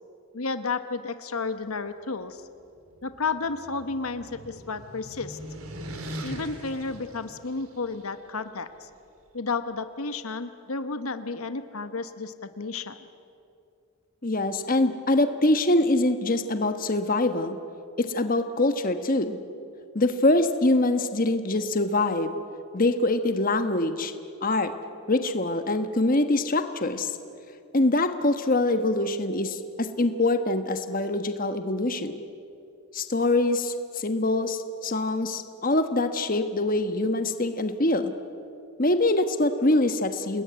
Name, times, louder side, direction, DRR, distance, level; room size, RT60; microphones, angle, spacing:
voice 1, 0.3-2.4 3.0-5.4 6.2-8.9 9.3-13.1, left 4 dB, 80° left, 10 dB, 1.1 m, -32 dB
sound 1, 2.8-8.0, equal, 80° right, 3.2 m, -41 dB
voice 2, 14.2-17.6 18.0-19.4 19.9-22.3 22.7-24.1 24.4-24.7 25.1-27.1 27.7-32.2 32.9-38.1 38.8-40.4, left 2 dB, 40° left, 8 dB, 1.3 m, -24 dB
28.5 x 20.0 x 9.5 m, 2.6 s
head